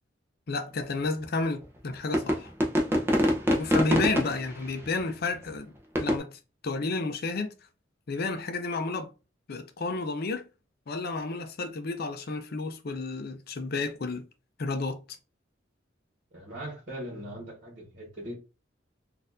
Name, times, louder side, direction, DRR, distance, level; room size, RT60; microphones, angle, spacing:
voice 1, 0.5-2.5 3.5-5.7 6.0-7.5 8.1-9.1 9.5-10.4 10.9-14.2 14.6-15.2, left 3 dB, 55° left, 0.5 m, -31 dB
sound 1, 1.2-1.3 2.1-5.0 5.5-5.6 6.0-6.2, equal, 15° right, 0.7 m, -24 dB
voice 2, 16.3-18.4, equal, 45° right, 1.6 m, -40 dB
4.1 x 2.6 x 2.6 m
head